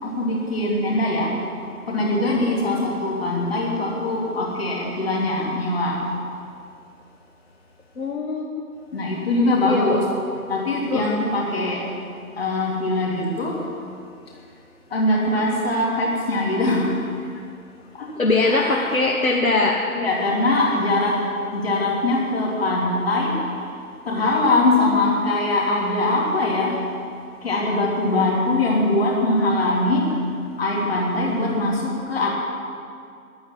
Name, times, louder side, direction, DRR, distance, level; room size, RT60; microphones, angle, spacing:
voice 1, 0.0-1.4 1.9-6.0 8.9-10.0 10.5-11.9 12.3-13.6 14.9-17.1 17.9-18.1 18.4-18.9 19.9-21.2 21.5-23.5 24.0-26.8 27.4-30.1 30.6-32.3, left 2 dB, 45° left, -2 dB, 3.0 m, -22 dB
voice 2, 8.0-8.6 9.6-10.0 10.9-11.1 18.2-19.8, left 3 dB, 70° left, 0 dB, 1.4 m, -21 dB
10.5 x 9.4 x 9.8 m, 2.4 s
figure-of-eight pair, 145°, 43 cm